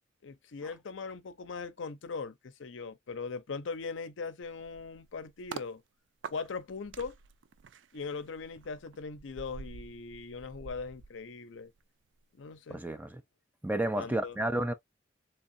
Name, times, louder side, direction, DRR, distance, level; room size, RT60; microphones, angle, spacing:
voice 1, 0.2-5.8 6.3-7.1 7.9-11.7 12.4-12.8 14.0-14.4, left 4 dB, 70° left, 0.5 m, -40 dB
sound 1, 4.4-5.7 6.2-11.8 12.1-12.4, right 5 dB, 70° right, 0.4 m, -48 dB
voice 2, 12.7-13.2 13.6-14.7, right 1 dB, 10° right, 0.4 m, -31 dB
3.5 x 3.3 x 2.5 m
head